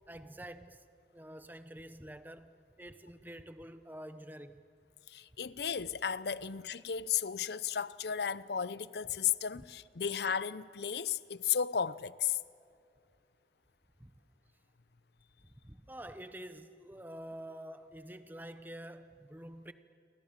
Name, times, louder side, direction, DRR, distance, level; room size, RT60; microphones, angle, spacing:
voice 1, 0.1-0.8 1.1-4.6 9.1-9.2 9.5-9.7 14.0-14.1 15.4-19.7, right 1 dB, 10° right, 1.0 m, -48 dB
voice 2, 5.1-12.4, left 8 dB, 70° left, 0.6 m, -34 dB
29.0 x 24.0 x 7.3 m
head